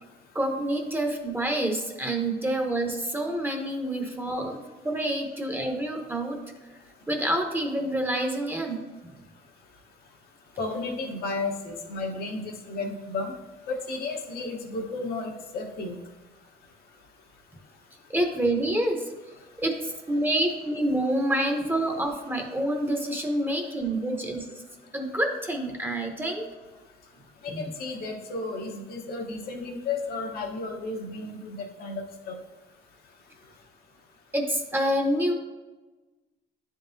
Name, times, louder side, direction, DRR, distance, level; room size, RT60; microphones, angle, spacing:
voice 1, 0.3-6.4 7.1-8.8 18.1-19.0 19.6-24.5 24.9-26.5 34.3-35.3, right 1 dB, 10° right, 3 dB, 0.8 m, -27 dB
voice 2, 10.6-13.3 13.7-15.9 27.4-32.3, left 3 dB, 65° left, 1 dB, 0.9 m, -33 dB
9.7 x 3.7 x 2.7 m, 1.2 s
cardioid pair, 110°, 17 cm